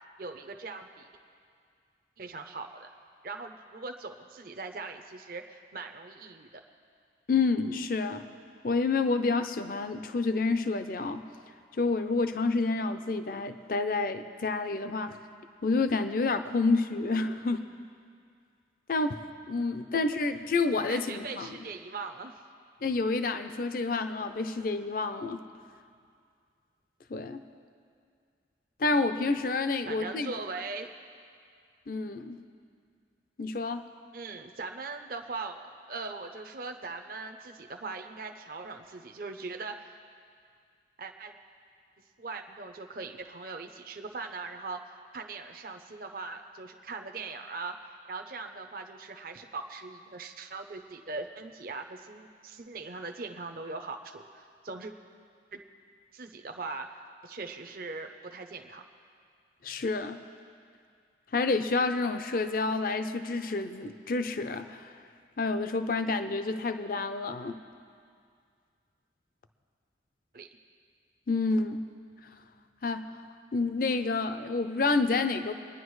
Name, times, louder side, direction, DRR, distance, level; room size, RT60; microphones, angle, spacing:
voice 1, 0.2-1.1 2.2-2.9 3.2-6.6 20.9-22.3 29.9-30.9 34.1-35.6 35.9-39.9 41.0-41.3 42.2-47.8 48.1-54.9 55.5-55.6 56.1-58.8 70.3-70.5, right 3 dB, 50° right, 5 dB, 0.6 m, -40 dB
voice 2, 7.3-8.3 8.6-11.2 11.8-15.2 15.6-17.7 18.9-19.2 19.5-21.5 22.8-25.4 27.1-27.4 28.8-30.3 31.9-32.4 33.4-33.9 59.6-60.2 61.3-64.9 65.4-67.6 71.3-71.8 72.8-73.1 73.5-75.5, left 3 dB, 50° left, 9 dB, 0.5 m, -29 dB
25.0 x 10.0 x 3.1 m, 2.2 s
head